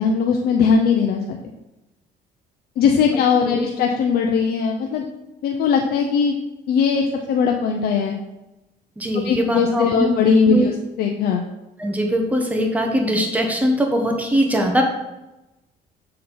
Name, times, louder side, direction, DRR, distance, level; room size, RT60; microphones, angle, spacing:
voice 1, 0.0-1.4 2.8-5.1 5.4-6.4 6.7-8.1 9.2-11.4, left 6 dB, 65° left, 2 dB, 0.6 m, -19 dB
voice 2, 9.0-10.2 10.5-10.7 11.8-14.8, equal, 10° right, 1 dB, 1.2 m, -21 dB
6.4 x 4.3 x 3.9 m, 0.98 s
cardioid pair, 110°, 17 cm